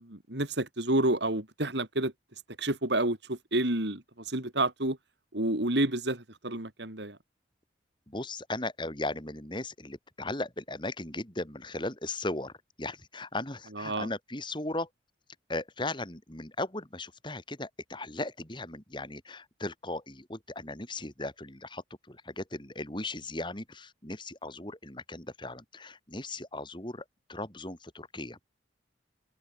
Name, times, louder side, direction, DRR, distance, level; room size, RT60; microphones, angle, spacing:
voice 1, 0.0-2.1 2.6-5.0 5.3-7.2 13.8-14.1, right 1 dB, 65° right, 3.4 m, -29 dB
voice 2, 8.1-12.5 12.8-14.9 15.5-28.4, left 2 dB, 25° left, 3.9 m, -37 dB
open air
head